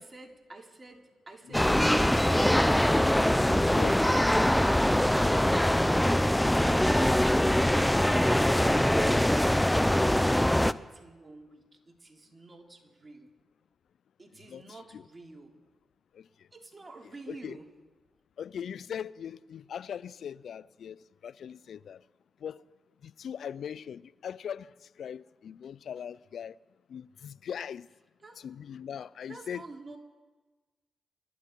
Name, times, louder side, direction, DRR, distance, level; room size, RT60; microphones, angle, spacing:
voice 1, 0.0-2.0 3.4-5.4 6.2-9.0 9.3-13.3 14.2-15.6 16.5-17.7 28.2-28.4 29.3-30.0, right 2 dB, 35° right, 3.2 m, -48 dB
sound 1, 1.5-10.7, left 1 dB, 10° left, 0.7 m, -23 dB
voice 2, 3.6-4.0 14.5-14.6 14.9-15.0 16.1-16.5 17.3-17.6 18.4-22.0 22.4-22.6 23.0-26.6 26.9-27.9 28.4-29.6, left 8 dB, 70° left, 0.4 m, -40 dB
26.0 x 12.0 x 4.6 m
hypercardioid pair, 40°, 0 cm